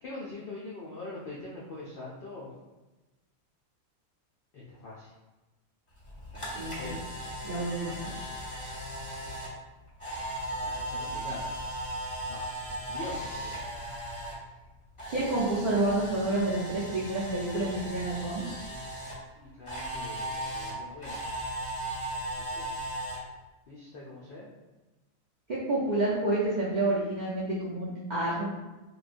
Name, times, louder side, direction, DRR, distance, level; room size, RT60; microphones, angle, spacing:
voice 1, 0.0-2.5 4.5-5.1 6.3-7.1 7.8-8.0 10.6-11.6 12.3-12.5 12.9-13.6 19.4-21.5 22.4-22.7 23.7-24.5, left 2 dB, 75° left, -5 dB, 0.5 m, -43 dB
Camera, 6.0-14.3 14.6-19.1 19.7-23.2, right 1 dB, 30° left, 0.7 m, -37 dB
voice 2, 6.6-6.9 7.4-8.1 15.1-18.6 25.5-28.5, right 2 dB, 75° right, -8 dB, 0.4 m, -29 dB
3.1 x 2.2 x 2.5 m, 1.1 s
omnidirectional pair, 1.5 m